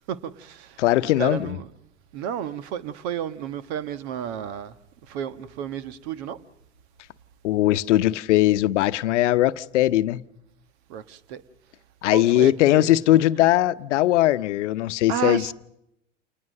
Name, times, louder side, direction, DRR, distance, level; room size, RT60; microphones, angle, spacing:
voice 1, 0.1-0.8 1.2-1.7 2.1-4.8 5.1-6.4 10.9-11.4 12.1-13.5 15.1-15.5, right 9 dB, 60° right, 1.4 m, -32 dB
voice 2, 0.8-1.6 7.4-10.2 12.0-15.4, left 14 dB, 70° left, 0.9 m, -20 dB
28.0 x 20.0 x 6.5 m
hypercardioid pair, 90°, 37 cm